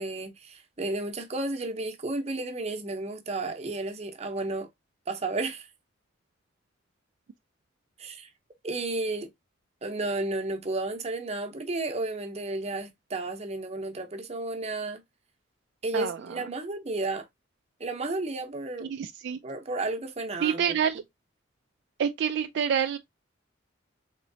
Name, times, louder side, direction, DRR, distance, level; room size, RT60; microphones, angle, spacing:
voice 1, 0.0-4.7 5.1-5.7 8.0-8.3 8.6-9.3 9.8-15.0 15.8-17.3 17.8-19.0 19.4-20.8, right 2 dB, 35° right, 0.8 m, -32 dB
voice 2, 18.8-19.4 20.4-21.0 22.0-23.0, right 8 dB, 60° right, 0.3 m, -27 dB
3.7 x 3.1 x 2.6 m
head